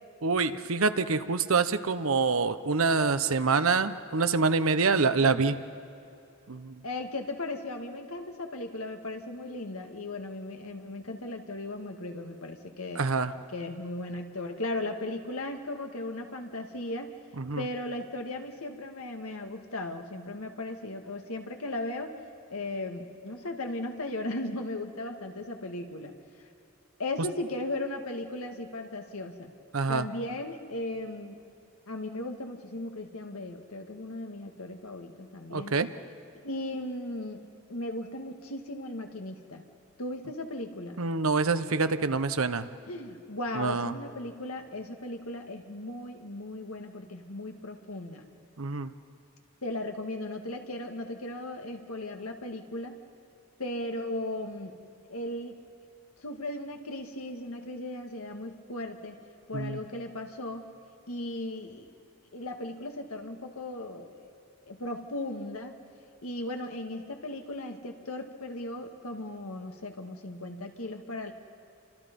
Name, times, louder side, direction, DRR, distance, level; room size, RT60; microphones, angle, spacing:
voice 1, 0.2-5.6 6.5-6.8 13.0-13.3 17.4-17.6 29.7-30.1 35.5-35.9 41.0-42.7 43.6-43.9 48.6-48.9 59.5-59.8, right 4 dB, 80° right, 11 dB, 0.9 m, -26 dB
voice 2, 6.8-13.1 13.5-17.1 17.6-22.1 22.5-26.1 26.4-26.5 27.0-29.5 29.9-31.4 31.9-35.8 36.3-37.4 37.7-39.6 40.0-41.0 42.9-48.3 49.6-53.0 53.6-54.8 55.1-55.6 56.2-59.2 59.5-60.7 61.1-61.9 62.3-64.3 64.6-65.8 66.2-71.3, left 2 dB, 90° left, 4 dB, 1.9 m, -37 dB
29.5 x 25.5 x 5.4 m, 2.7 s
head